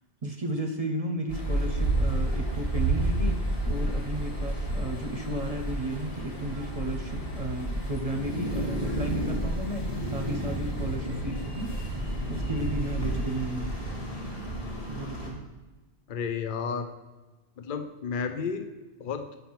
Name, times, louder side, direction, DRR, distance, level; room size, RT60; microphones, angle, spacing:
voice 1, 0.2-11.7 12.3-13.7 14.9-15.5, right 1 dB, 40° right, 4 dB, 0.8 m, -33 dB
sound 1, 1.3-15.3, right 1 dB, 75° left, 2.6 m, -31 dB
voice 2, 16.1-16.9 17.6-18.7 19.0-19.3, left 6 dB, 60° left, 8 dB, 0.8 m, -32 dB
7.5 x 5.6 x 5.8 m, 1.2 s
omnidirectional pair, 1.0 m